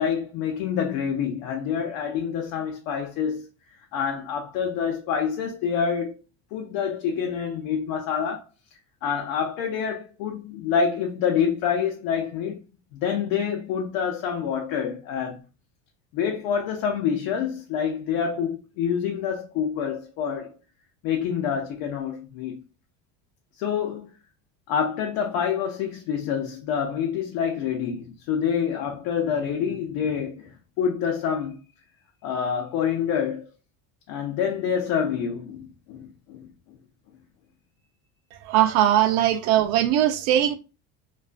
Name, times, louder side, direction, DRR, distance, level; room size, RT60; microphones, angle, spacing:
voice 1, 0.0-3.4 3.9-6.2 6.5-8.4 9.0-12.6 12.9-15.4 16.1-20.5 21.0-22.6 23.6-24.1 24.7-30.5 30.8-31.6 32.2-33.4 34.1-36.4, left 7 dB, 70° left, 0.5 m, -27 dB
voice 2, 38.4-40.6, right 12 dB, 70° right, 0.5 m, -20 dB
2.4 x 2.2 x 2.4 m
cardioid pair, 155°, 32 cm